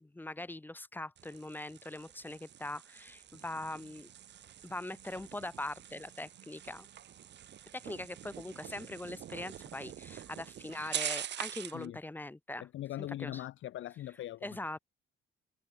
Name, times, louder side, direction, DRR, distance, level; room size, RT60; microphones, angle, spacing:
voice 1, 0.0-4.1 4.6-6.9 7.7-12.7 13.2-13.4 14.4-14.8, left 2 dB, 10° left, 0.6 m, -42 dB
sound 1, 1.2-11.9, right 10 dB, 60° right, 1.6 m, -45 dB
sound 2, 3.6-11.0, right 14 dB, 85° right, 8.0 m, -65 dB
voice 2, 12.6-14.5, left 13 dB, 75° left, 1.3 m, -41 dB
cardioid pair, 90°, 20 cm